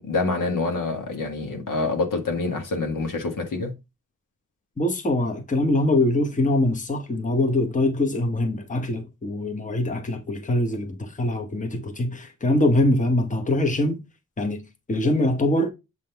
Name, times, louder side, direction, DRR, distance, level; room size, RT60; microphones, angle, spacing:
voice 1, 0.0-3.7, left 3 dB, 80° left, 1.6 m, -26 dB
voice 2, 4.8-14.0 14.4-14.6 14.9-15.7, left 1 dB, 25° left, 1.0 m, -23 dB
7.7 x 3.8 x 3.4 m
wide cardioid pair, 105°, 32 cm